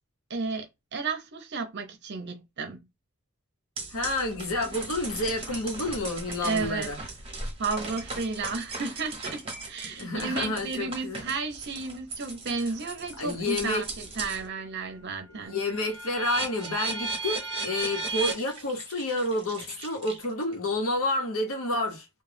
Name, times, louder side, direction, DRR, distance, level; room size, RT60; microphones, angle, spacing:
voice 1, 0.3-2.9 6.4-6.9 7.6-15.6, right 4 dB, 50° right, 0.7 m, -33 dB
sound 1, 3.8-14.5 14.9-20.5, right 3 dB, 25° right, 0.9 m, -37 dB
voice 2, 3.9-7.0 10.0-11.2 13.2-13.9 15.3-22.1, left 2 dB, 70° left, 0.9 m, -29 dB
2.3 x 2.2 x 3.3 m
head